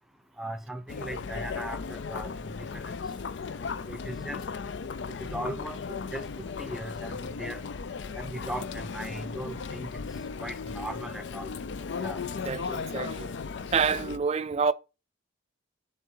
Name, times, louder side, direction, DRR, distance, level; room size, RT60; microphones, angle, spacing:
voice 1, 0.4-2.3 3.9-4.4 5.3-5.8 6.1-6.2 6.6-7.6 8.2-10.0 10.4-11.5 12.0-12.2, right 1 dB, ahead, 0.7 m, -38 dB
Chatter, 0.9-14.2, left 5 dB, 65° left, 0.4 m, -36 dB
voice 2, 12.5-13.3 13.7-14.7, right 6 dB, 35° right, 0.4 m, -27 dB
10.5 x 3.6 x 4.5 m
head